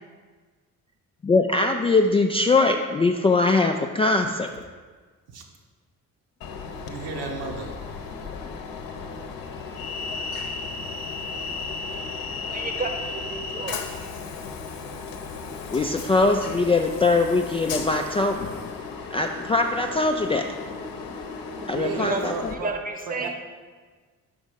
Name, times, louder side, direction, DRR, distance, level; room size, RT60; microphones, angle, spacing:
voice 1, 1.2-4.5 15.7-18.5 19.1-20.5 21.7-22.5, left 3 dB, 15° left, 3 dB, 0.3 m, -22 dB
Train, 6.4-22.6, left 4 dB, 60° left, 0.8 m, -35 dB
voice 2, 6.8-7.8 21.7-22.8 23.1-23.3, right 3 dB, 65° right, 1 dB, 1.2 m, -33 dB
voice 3, 12.4-13.8 21.9-22.3 22.6-23.3, right 3 dB, 20° right, 5 dB, 1.0 m, -31 dB
5.3 x 5.2 x 5.1 m, 1.4 s
hypercardioid pair, 45°, 41 cm